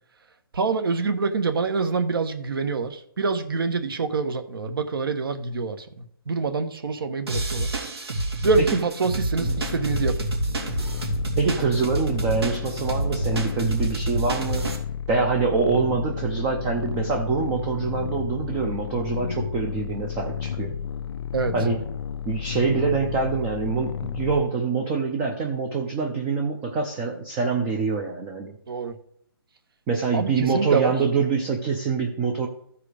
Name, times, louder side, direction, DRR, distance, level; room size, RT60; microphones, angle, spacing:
voice 1, 0.5-7.7 8.4-10.3 21.3-21.5 28.7-28.9 30.1-30.9, right 4 dB, 65° right, 8 dB, 1.3 m, -26 dB
sound 1, 7.3-14.8, right 2 dB, 90° right, 2.9 m, -28 dB
sound 2, 9.4-24.4, left 8 dB, 85° left, 0.5 m, -32 dB
voice 2, 11.4-14.6 15.1-20.8 21.5-21.8 22.3-28.6 29.9-32.5, right 4 dB, 10° right, 3 dB, 0.5 m, -25 dB
14.0 x 4.8 x 5.0 m, 0.70 s
hypercardioid pair, 170°, 13 cm